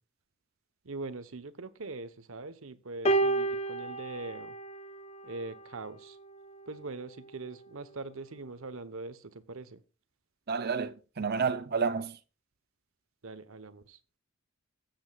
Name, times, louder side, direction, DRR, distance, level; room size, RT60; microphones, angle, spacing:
voice 1, 0.8-4.5 5.2-6.2 6.7-9.8 13.2-14.0, right 3 dB, 70° right, 1.0 m, -42 dB
sound 1, 3.1-5.5 6.5-6.7, right 3 dB, 30° left, 0.8 m, -30 dB
voice 2, 10.5-12.2, right 5 dB, 45° right, 0.6 m, -30 dB
15.5 x 7.9 x 2.4 m
head